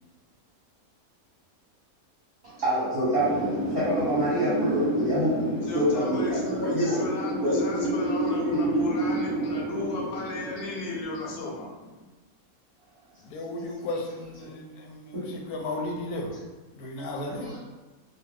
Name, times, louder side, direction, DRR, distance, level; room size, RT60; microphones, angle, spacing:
voice 1, 2.4-7.0 7.4-7.5 15.1-15.3, equal, 45° right, -10 dB, 1.0 m, -27 dB
Wind, 3.1-11.8, right 1 dB, 5° right, 0.5 m, -29 dB
voice 2, 5.5-11.7, left 3 dB, 55° left, -3 dB, 0.8 m, -35 dB
voice 3, 13.2-16.4 16.7-17.6, left 2 dB, 85° left, 1 dB, 1.1 m, -34 dB
2.5 x 2.5 x 3.2 m, 1.2 s
omnidirectional pair, 1.5 m